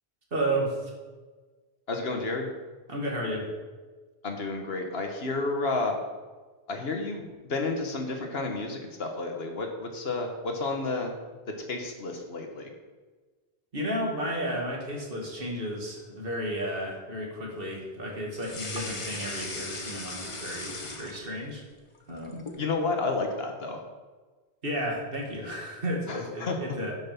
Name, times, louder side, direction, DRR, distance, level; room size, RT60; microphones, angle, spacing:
voice 1, 0.3-0.9 2.9-3.5 13.7-21.6 22.1-22.5 24.6-26.9, right 1 dB, 60° right, -1 dB, 2.4 m, -32 dB
voice 2, 1.9-2.5 4.2-6.0 6.7-11.1 11.5-12.7 22.6-23.8 26.1-26.6, left 3 dB, 65° left, 3 dB, 1.6 m, -31 dB
sound 1, 18.4-21.6 22.0-22.7, left 2 dB, 30° left, 1.1 m, -37 dB
10.5 x 6.3 x 5.9 m, 1.4 s
omnidirectional pair, 1.1 m